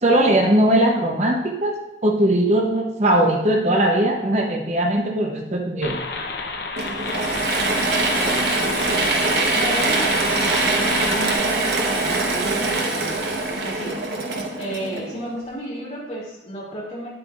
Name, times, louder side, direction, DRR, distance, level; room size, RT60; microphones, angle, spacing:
voice 1, 0.0-6.0, right 1 dB, 40° right, 1 dB, 0.8 m, -19 dB
sound 1, 5.8-11.3, left 3 dB, 65° left, 0.7 m, -30 dB
Mechanisms / Drill, 6.8-15.4, right 3 dB, 70° right, 1.0 m, -23 dB
voice 2, 8.1-10.4 10.7-13.2 13.5-14.0 14.6-17.1, equal, 40° left, -4 dB, 2.4 m, -33 dB
9.8 x 7.7 x 2.4 m, 0.97 s
head